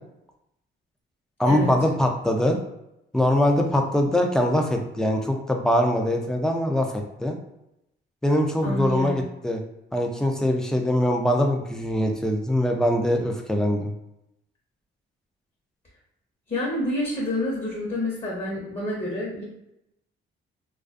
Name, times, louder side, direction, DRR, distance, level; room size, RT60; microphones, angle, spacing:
voice 1, 1.4-2.6 3.1-7.4 8.2-9.6 9.9-13.9, left 1 dB, 5° left, 2 dB, 0.4 m, -22 dB
voice 2, 8.6-9.2 16.5-19.4, left 1 dB, 30° left, -6 dB, 0.8 m, -28 dB
2.4 x 2.3 x 2.4 m, 0.84 s
cardioid pair, 90°, 20 cm